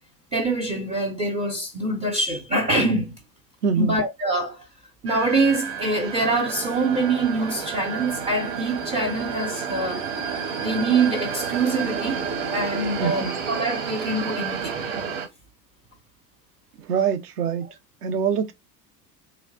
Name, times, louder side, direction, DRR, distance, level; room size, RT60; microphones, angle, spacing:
voice 1, 0.3-3.2 3.8-4.6 5.0-10.0 10.6-12.2 12.5-14.8, right 2 dB, 15° right, 0.4 m, -24 dB
voice 2, 3.6-4.0 13.0-13.3 16.9-17.7 18.0-18.5, right 7 dB, 70° right, 0.7 m, -24 dB
sound 1, 5.1-15.3, right 6 dB, 45° right, 1.0 m, -30 dB
3.2 x 2.4 x 2.5 m
figure-of-eight pair, 70°, 49 cm